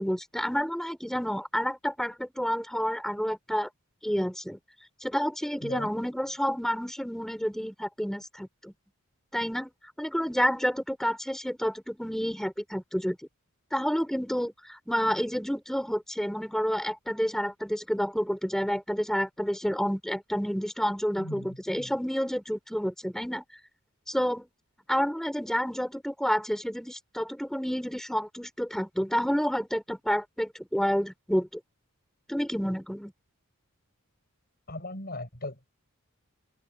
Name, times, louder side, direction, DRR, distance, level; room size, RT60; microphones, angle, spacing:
voice 1, 0.0-3.7 4.0-4.6 5.0-8.7 9.3-9.7 10.0-13.2 13.7-23.4 24.1-24.5 24.9-31.5 32.3-33.1, equal, ahead, 5.2 m, -29 dB
voice 2, 21.2-21.9 34.7-35.7, left 1 dB, 45° left, 7.5 m, -38 dB
head